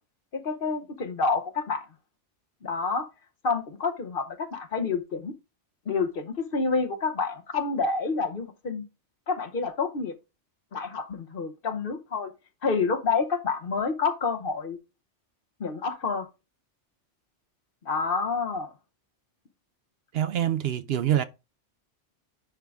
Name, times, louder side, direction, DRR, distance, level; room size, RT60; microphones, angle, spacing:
voice 1, 0.3-1.8 2.6-3.1 3.4-5.3 5.9-8.8 9.3-10.2 10.7-12.3 12.6-14.8 15.6-16.3 17.8-18.7, left 4 dB, 50° left, 1.0 m, -28 dB
voice 2, 20.1-21.2, right 11 dB, 65° right, 0.7 m, -25 dB
10.5 x 3.6 x 3.4 m
omnidirectional pair, 1.2 m